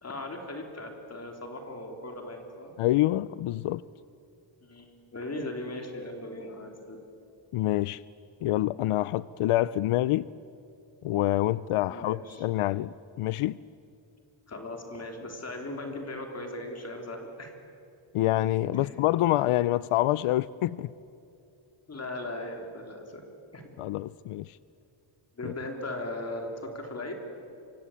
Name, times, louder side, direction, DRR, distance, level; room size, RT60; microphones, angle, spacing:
voice 1, 0.0-2.8 4.6-7.0 11.9-12.5 14.5-17.5 18.7-18.9 21.9-23.2 23.5-23.7 25.3-27.2, left 1 dB, 30° left, 3 dB, 3.5 m, -38 dB
voice 2, 2.8-3.8 7.5-8.0 8.4-10.3 11.0-13.6 18.1-20.9 23.8-24.6 25.4-25.5, left 15 dB, 85° left, 18 dB, 0.6 m, -26 dB
25.5 x 23.5 x 8.6 m, 2.7 s
wide cardioid pair, 170°, 50 cm